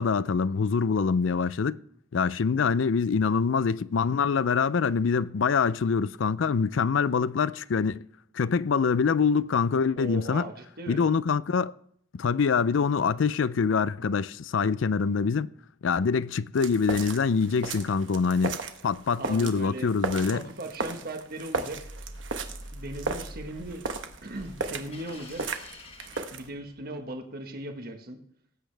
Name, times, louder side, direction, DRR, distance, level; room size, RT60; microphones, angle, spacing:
voice 1, 0.0-1.8 2.1-8.0 8.3-10.5 10.9-11.7 12.1-15.5 15.8-20.5, left 5 dB, 70° left, 0.4 m, -25 dB
voice 2, 9.9-11.0 19.2-21.8 22.7-23.8 24.2-25.4 26.3-28.2, right 1 dB, 50° right, 1.4 m, -38 dB
sound 1, 16.6-26.5, right 3 dB, 65° right, 1.1 m, -36 dB
sound 2, 21.7-27.0, equal, 30° left, 1.3 m, -45 dB
18.5 x 8.5 x 3.4 m
head